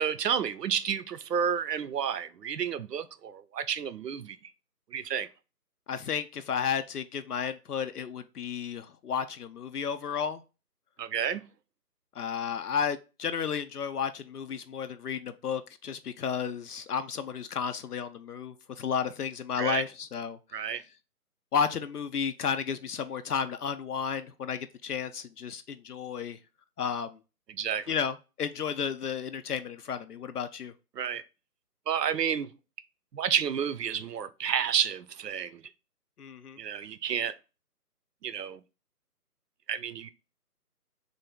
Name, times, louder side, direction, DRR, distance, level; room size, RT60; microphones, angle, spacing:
voice 1, 0.0-4.4 4.9-5.3 11.0-11.4 19.6-19.8 20.5-20.8 27.5-27.9 31.0-31.2 31.9-32.5 33.1-35.6 36.6-37.3 38.2-38.6 39.7-40.1, right 8 dB, 85° right, 0.6 m, -30 dB
voice 2, 5.9-10.4 12.2-20.4 21.5-26.4 26.8-27.2 27.9-30.7 36.2-36.6, left 7 dB, 70° left, 0.5 m, -32 dB
3.4 x 2.6 x 3.6 m
hypercardioid pair, 180°, 47 cm